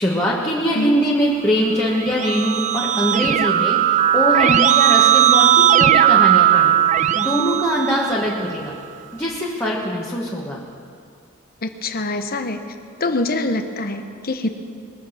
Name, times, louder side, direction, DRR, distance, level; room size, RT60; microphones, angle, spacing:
voice 1, 0.0-8.7 9.1-10.6, equal, 10° left, -5 dB, 1.5 m, -22 dB
Keyboard (musical), 1.8-8.5, right 11 dB, 35° right, 0.4 m, -17 dB
voice 2, 11.6-12.6 13.0-14.5, left 2 dB, 45° left, 8 dB, 1.0 m, -24 dB
21.5 x 7.3 x 7.3 m, 2.3 s
head